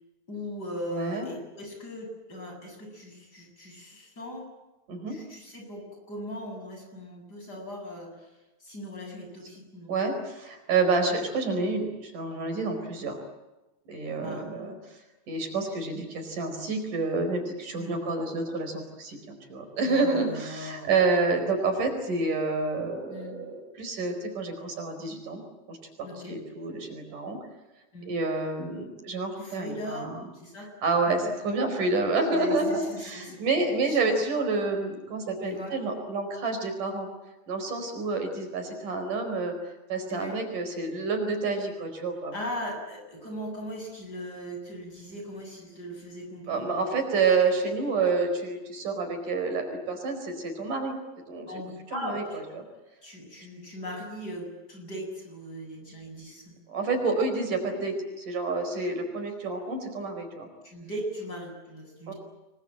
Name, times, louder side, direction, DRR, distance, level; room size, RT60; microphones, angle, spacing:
voice 1, 0.3-4.5 5.1-8.3 8.6-9.9 14.2-14.5 17.8-18.0 19.8-20.9 23.1-23.3 26.0-26.4 27.9-28.1 29.4-30.7 32.3-33.4 33.9-34.0 35.4-35.7 40.1-40.4 42.3-46.9 51.5-52.6 53.0-56.6 60.6-62.1, equal, 25° left, 2 dB, 8.3 m, -39 dB
voice 2, 0.9-1.3 4.9-5.2 9.9-13.2 13.9-15.0 15.3-25.4 25.7-27.4 28.1-30.2 30.8-37.1 37.5-39.5 39.9-42.3 46.5-51.0 51.3-51.5 51.9-52.4 56.7-60.5 62.1-62.2, right 3 dB, 60° right, 5 dB, 6.1 m, -29 dB
28.0 x 22.0 x 9.0 m, 1.0 s
omnidirectional pair, 4.1 m